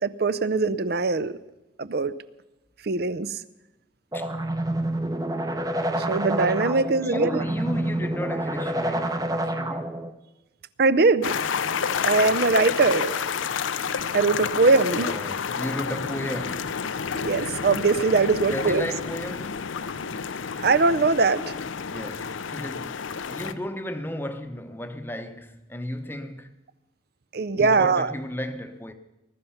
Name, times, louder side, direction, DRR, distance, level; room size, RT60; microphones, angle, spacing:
voice 1, 0.0-1.4 1.8-2.1 2.8-3.4 5.9-7.4 10.8-11.4 12.1-13.1 14.1-15.1 17.1-18.8 20.6-21.5 27.3-28.1, right 4 dB, 55° right, 0.6 m, -21 dB
sound 1, 4.1-10.1, right 1 dB, 20° right, 0.8 m, -28 dB
voice 2, 7.0-10.0 15.0-16.9 18.4-19.8 21.9-26.5 27.4-28.9, left 1 dB, 10° left, 0.9 m, -34 dB
sound 2, 11.2-23.5, left 6 dB, 85° left, 0.6 m, -30 dB
20.5 x 12.5 x 5.8 m
head